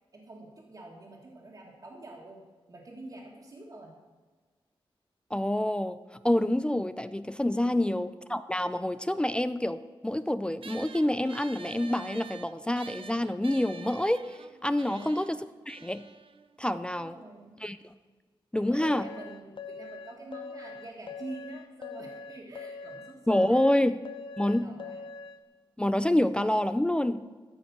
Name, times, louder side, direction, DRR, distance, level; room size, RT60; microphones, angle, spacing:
voice 1, 0.1-3.9 7.6-8.0 14.8-15.2 17.0-17.6 18.5-23.8 24.6-25.0, right 2 dB, 40° right, -2 dB, 1.6 m, -46 dB
voice 2, 5.3-6.0 6.2-14.2 14.6-15.4 15.7-16.1 16.6-17.1 17.6-17.8 18.5-19.1 23.3-24.0 24.4-24.7 25.8-27.2, left 1 dB, 10° left, 12 dB, 0.3 m, -27 dB
sound 1, 10.6-17.4, right 6 dB, 70° right, 0.5 m, -49 dB
sound 2, 18.8-25.4, left 5 dB, 60° left, 0.8 m, -42 dB
14.0 x 5.1 x 5.9 m, 1.4 s
wide cardioid pair, 120°, 9 cm